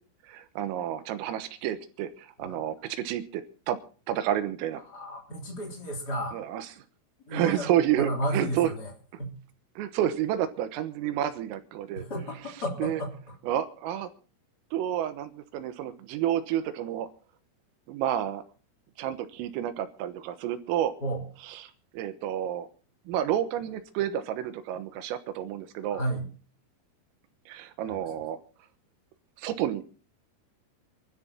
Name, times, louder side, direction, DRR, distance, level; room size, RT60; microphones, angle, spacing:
voice 1, 0.3-3.8 4.1-4.8 6.3-6.7 7.3-8.7 9.8-12.1 12.8-13.0 13.5-14.1 14.7-17.1 17.9-18.4 19.0-20.9 21.4-22.7 23.1-26.0 27.5-28.4 29.4-29.8, right 11 dB, 85° right, 10 dB, 3.8 m, -30 dB
voice 2, 4.8-6.4 7.3-7.7 8.0-8.9 9.2-9.3 11.9-13.1 21.0-21.2 25.9-26.2 27.9-28.1, right 1 dB, 20° left, 0 dB, 3.4 m, -33 dB
27.5 x 13.0 x 2.9 m, 0.40 s
omnidirectional pair, 5.9 m